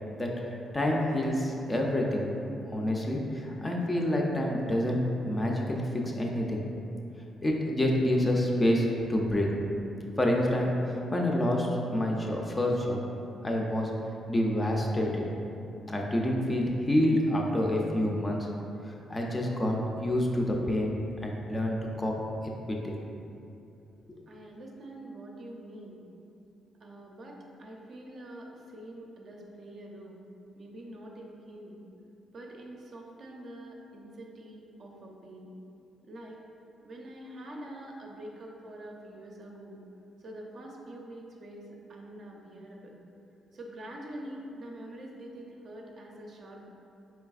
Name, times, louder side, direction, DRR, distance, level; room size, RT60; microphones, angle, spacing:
voice 1, 0.2-2.3 2.7-6.6 7.4-9.5 10.2-13.0 13.4-13.9 14.3-15.2 15.9-18.5 19.1-20.9 21.2-22.1 22.4-23.0, left 1 dB, 20° left, -1 dB, 0.4 m, -28 dB
voice 2, 24.3-26.0 26.8-30.2 30.5-31.8 32.3-35.5 36.0-36.4 36.8-39.8 40.2-43.0 43.5-46.7, right 1 dB, 50° right, -1 dB, 0.5 m, -45 dB
4.6 x 3.3 x 2.4 m, 2.8 s
cardioid pair, 115°, 0 cm